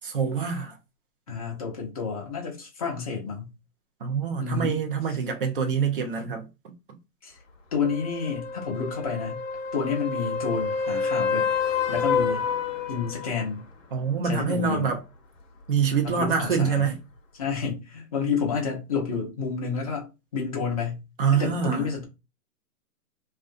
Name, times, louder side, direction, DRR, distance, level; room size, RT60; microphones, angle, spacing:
voice 1, 0.0-0.7 4.0-6.7 13.9-15.0 15.7-17.0 21.2-21.9, right 6 dB, 35° right, 0.6 m, -25 dB
voice 2, 1.3-3.5 4.4-4.8 7.2-7.3 7.7-9.4 9.7-11.5 11.9-12.5 12.9-13.7 14.2-15.0 16.0-16.9 17.3-21.0 21.3-22.0, left 5 dB, 25° left, 0.5 m, -30 dB
sound 1, 7.8-13.5 17.6-17.7, left 5 dB, 55° left, 0.8 m, -28 dB
2.5 x 2.3 x 2.4 m
hypercardioid pair, 135°, 48 cm